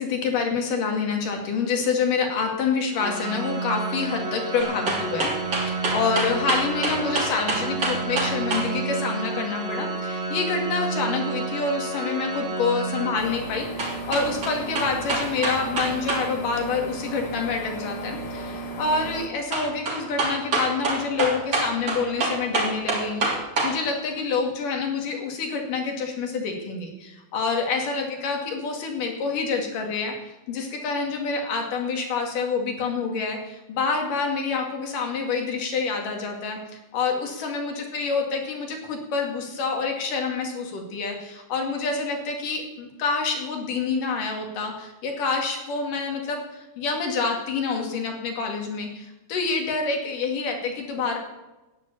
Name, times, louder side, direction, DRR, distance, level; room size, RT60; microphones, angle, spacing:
voice 1, 0.0-5.3 5.6-23.3 23.6-30.1 30.5-51.2, left 4 dB, 70° left, 3 dB, 3.9 m, -27 dB
Organ, 2.9-13.8, right 4 dB, 25° right, 2.1 m, -30 dB
sound 1, 4.6-8.7 13.8-16.3 16.5-16.6 19.5-23.7 24.2-24.3, right 3 dB, 45° right, 4.0 m, -26 dB
sound 2, 13.2-19.3, right 2 dB, 40° left, 1.8 m, -35 dB
12.5 x 10.0 x 8.5 m, 1.0 s
omnidirectional pair, 3.9 m